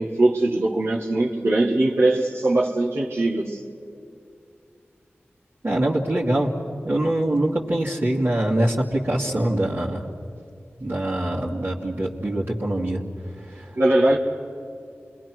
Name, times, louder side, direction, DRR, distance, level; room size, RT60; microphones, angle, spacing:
voice 1, 0.0-3.6 13.8-14.2, right 2 dB, 75° right, -6 dB, 1.8 m, -21 dB
voice 2, 5.6-6.5 6.8-10.0 10.8-13.0 13.4-13.7, right 1 dB, 50° right, -5 dB, 2.5 m, -24 dB
28.5 x 21.5 x 6.2 m, 2.4 s
cardioid pair, 40°, 5 cm